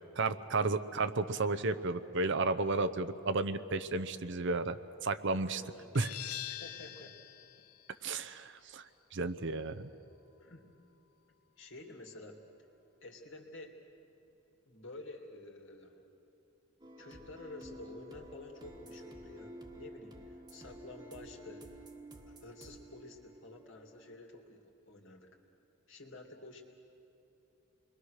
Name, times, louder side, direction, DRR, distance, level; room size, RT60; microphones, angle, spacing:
voice 1, 0.2-5.6 5.9-6.1 8.0-8.8 9.1-9.9, right 3 dB, 55° right, 10 dB, 0.7 m, -33 dB
voice 2, 5.6-5.9 6.5-7.1 8.3-8.5 10.4-10.7 11.6-12.4 13.0-13.8 14.6-16.0 17.0-21.7 22.3-25.3 25.9-26.6, left 2 dB, 60° left, 2 dB, 2.6 m, -50 dB
sound 1, 5.9-11.4, left 13 dB, 90° left, 0.8 m, -47 dB
sound 2, 16.8-24.1, right 1 dB, 20° right, 1.5 m, -51 dB
29.0 x 22.0 x 6.5 m, 2.9 s
head